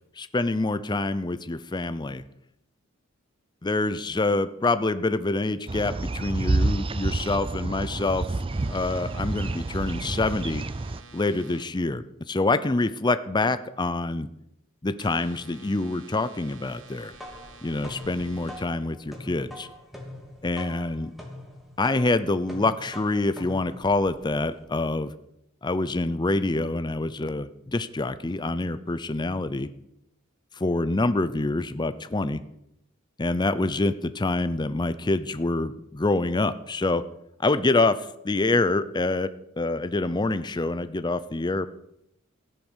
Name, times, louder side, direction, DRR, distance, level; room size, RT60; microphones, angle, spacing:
voice 1, 0.2-2.2 3.6-8.3 8.7-10.6 11.1-14.3 14.8-17.1 17.6-19.7 20.4-21.1 21.8-25.1 25.6-29.7 30.6-32.4 33.2-37.0 37.4-37.9 38.2-39.3 39.6-41.7, left 2 dB, 20° left, 12 dB, 0.5 m, -26 dB
sound 1, 5.7-11.0, right 2 dB, 25° right, 0.5 m, -29 dB
sound 2, 8.5-11.6 15.0-18.6, right 4 dB, 65° right, 2.5 m, -50 dB
sound 3, 17.1-24.6, left 1 dB, ahead, 2.7 m, -43 dB
15.0 x 10.5 x 6.3 m, 0.79 s
head